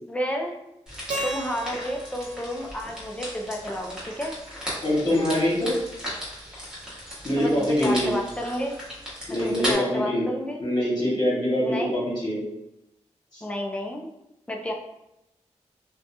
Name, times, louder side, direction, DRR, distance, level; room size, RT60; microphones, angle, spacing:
voice 1, 0.1-0.5 1.2-4.4 7.4-8.8 9.4-10.6 11.6-11.9 13.4-14.1 14.5-14.7, equal, 10° left, 1 dB, 0.5 m, -31 dB
sound 1, 0.9-9.7, equal, 5° right, 1.1 m, -36 dB
Keyboard (musical), 1.1-4.1, right 1 dB, 85° right, 0.6 m, -37 dB
voice 2, 4.8-5.7 7.2-8.1 9.3-10.3 10.6-12.4 13.3-13.4, equal, 35° left, -5 dB, 1.3 m, -24 dB
2.8 x 2.2 x 2.6 m, 0.88 s
wide cardioid pair, 80°, 12 cm